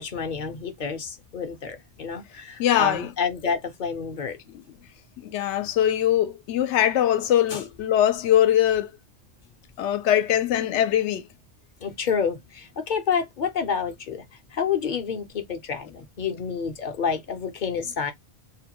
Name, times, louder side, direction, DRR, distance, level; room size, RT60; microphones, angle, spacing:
voice 1, 0.0-4.4 7.5-7.6 11.8-14.2 14.5-18.1, left 6 dB, 55° left, 0.6 m, -29 dB
voice 2, 2.6-3.1 4.5-4.6 5.2-8.9 9.8-11.3, left 11 dB, 90° left, 0.9 m, -22 dB
2.8 x 2.1 x 2.9 m
omnidirectional pair, 1.1 m